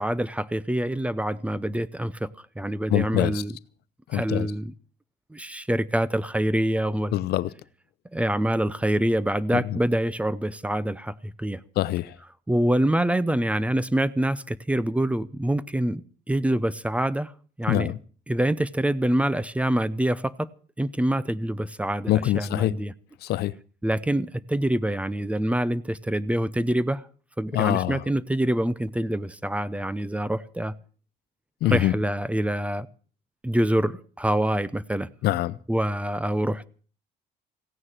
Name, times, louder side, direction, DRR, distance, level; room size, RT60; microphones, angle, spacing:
voice 1, 0.0-2.3 2.6-3.6 4.1-4.7 5.3-7.1 8.1-11.6 12.5-17.3 17.6-18.0 18.3-20.5 20.8-22.9 23.8-27.1 27.4-30.7 31.6-32.9 33.4-35.1 35.7-36.7, right 1 dB, 10° right, 0.6 m, -25 dB
voice 2, 2.9-3.3 4.1-4.5 7.1-7.5 11.8-12.1 17.7-18.0 22.1-22.7 23.3-23.5 27.5-28.0 31.6-31.9 35.2-35.5, left 15 dB, 70° left, 0.7 m, -23 dB
16.5 x 9.6 x 7.4 m
cardioid pair, 110°, 17 cm